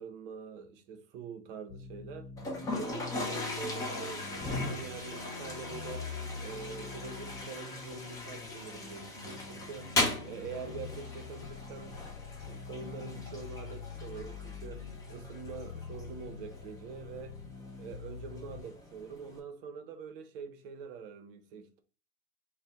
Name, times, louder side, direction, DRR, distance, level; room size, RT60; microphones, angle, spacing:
voice 1, 0.0-2.3 2.7-6.1 6.4-9.9 10.2-17.4 17.8-21.8, right 5 dB, 45° right, 0.8 m, -45 dB
sound 1, 1.7-18.6, left 5 dB, 80° left, 0.8 m, -45 dB
Toilet flush, 2.4-19.4, left 2 dB, 10° left, 0.4 m, -39 dB
4.1 x 2.2 x 3.5 m
hypercardioid pair, 120°, 40 cm